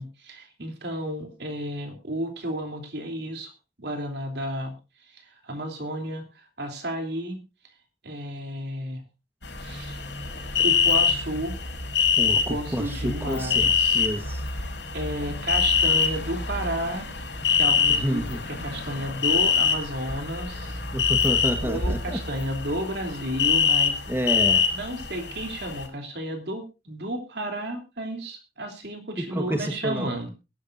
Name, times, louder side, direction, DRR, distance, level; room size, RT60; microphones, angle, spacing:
voice 1, 0.0-3.5 3.8-4.8 5.1-7.4 8.0-9.0 9.6-10.0 10.6-11.6 12.2-14.0 14.6-17.1 17.5-20.8 21.6-24.0 24.7-30.3, right 1 dB, 65° right, 4 dB, 3.1 m, -32 dB
sound 1, 9.4-25.8, left 6 dB, 75° left, 5.8 m, -25 dB
voice 2, 12.2-14.4 17.9-18.4 20.9-22.2 24.1-24.6 29.2-30.1, equal, 10° right, 5 dB, 1.3 m, -29 dB
21.5 x 11.5 x 2.6 m, 0.28 s
head